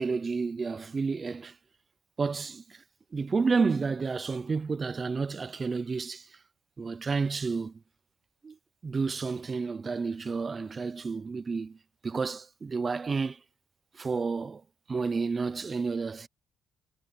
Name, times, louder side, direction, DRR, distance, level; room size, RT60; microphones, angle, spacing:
voice 1, 0.0-1.6 2.2-2.8 3.1-6.4 6.8-7.8 8.4-8.6 8.8-11.8 12.0-13.4 13.9-14.6 14.9-16.3, right 4 dB, 35° right, 0.6 m, -30 dB
cardioid pair, 90°, 0 cm